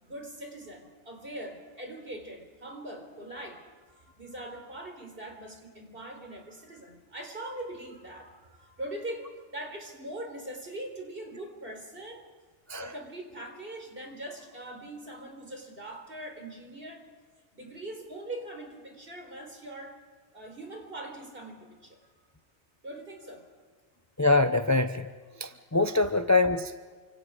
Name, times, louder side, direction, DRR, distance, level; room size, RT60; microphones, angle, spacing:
voice 1, 0.0-12.3 12.8-17.1 17.5-20.0 20.3-22.1 22.8-23.5, right 1 dB, 50° right, 3 dB, 4.5 m, -42 dB
voice 2, 24.2-25.1 25.4-27.0, left 3 dB, 20° left, 9 dB, 0.6 m, -24 dB
29.0 x 26.5 x 5.0 m, 1.5 s
omnidirectional pair, 1.2 m